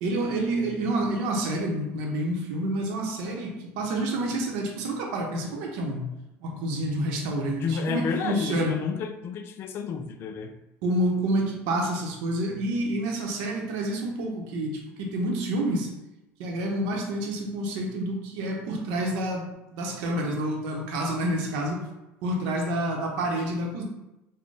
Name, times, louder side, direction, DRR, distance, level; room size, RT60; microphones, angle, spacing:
voice 1, 0.0-6.1 6.4-8.7 10.8-15.9 16.4-21.8 22.2-23.8, right 1 dB, 75° right, 0 dB, 0.7 m, -28 dB
voice 2, 7.6-10.5, left 5 dB, 45° left, 8 dB, 0.4 m, -31 dB
4.2 x 2.1 x 3.3 m, 0.95 s
cardioid pair, 140°, 6 cm